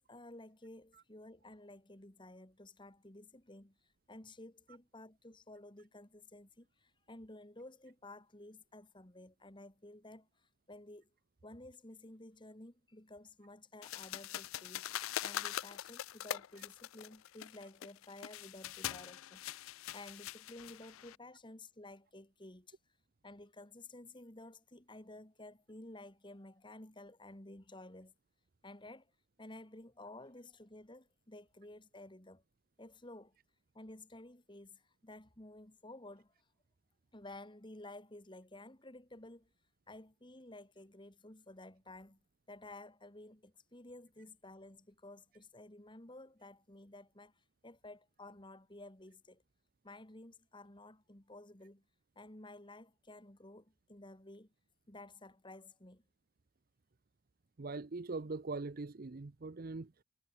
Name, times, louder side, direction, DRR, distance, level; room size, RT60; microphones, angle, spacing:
voice 1, 0.0-3.8 4.1-11.1 11.4-14.9 15.2-22.8 23.2-28.1 28.6-29.1 29.4-32.4 32.8-33.4 33.7-36.3 37.1-39.5 39.9-42.2 42.5-49.4 49.8-51.8 52.2-54.5 54.9-56.0, left 2 dB, 25° left, 2.2 m, -53 dB
sound 1, 13.8-21.2, left 12 dB, 85° left, 0.4 m, -43 dB
voice 2, 57.6-60.0, right 3 dB, 45° right, 0.6 m, -42 dB
head